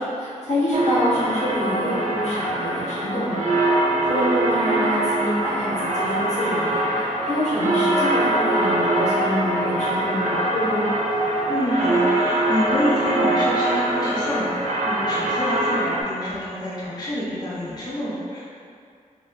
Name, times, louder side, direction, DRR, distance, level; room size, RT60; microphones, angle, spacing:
voice 1, 0.0-3.5 4.0-6.8 7.2-10.8, left 1 dB, 55° left, -9 dB, 1.0 m, -26 dB
sound 1, 0.7-16.0, right 1 dB, 65° right, 0.5 m, -23 dB
voice 2, 11.5-18.4, left 1 dB, 30° left, -8 dB, 0.5 m, -27 dB
3.1 x 2.6 x 2.2 m, 2.3 s
wide cardioid pair, 105°, 14 cm